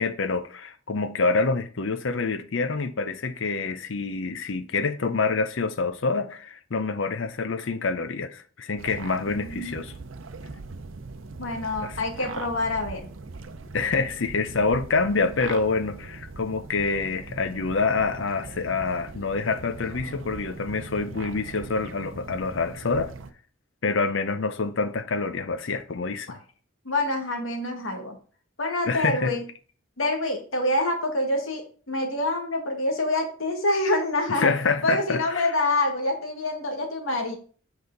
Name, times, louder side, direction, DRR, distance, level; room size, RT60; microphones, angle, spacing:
voice 1, 0.0-9.9 11.8-12.0 13.7-23.1 23.8-26.4 28.9-29.3 34.3-35.5, left 4 dB, 65° left, 0.6 m, -26 dB
sound 1, 8.8-23.3, right 3 dB, 75° right, 0.7 m, -40 dB
voice 2, 9.3-9.8 11.4-13.1 26.3-26.4 26.9-28.2 28.6-29.4 30.0-34.5 34.8-37.4, left 2 dB, 85° left, 1.9 m, -26 dB
8.0 x 4.9 x 3.8 m
head